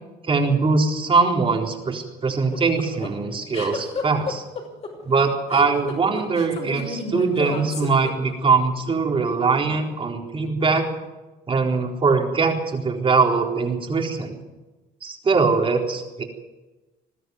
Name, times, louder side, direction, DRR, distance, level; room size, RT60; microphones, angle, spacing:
voice 1, 0.2-4.4 5.0-10.9 11.5-14.4 15.0-16.2, right 4 dB, 30° right, 2 dB, 4.1 m, -22 dB
sound 1, 2.3-8.6, left 4 dB, 40° left, 5.6 m, -32 dB
21.0 x 13.0 x 9.5 m, 1.1 s
cardioid pair, 110°, 17 cm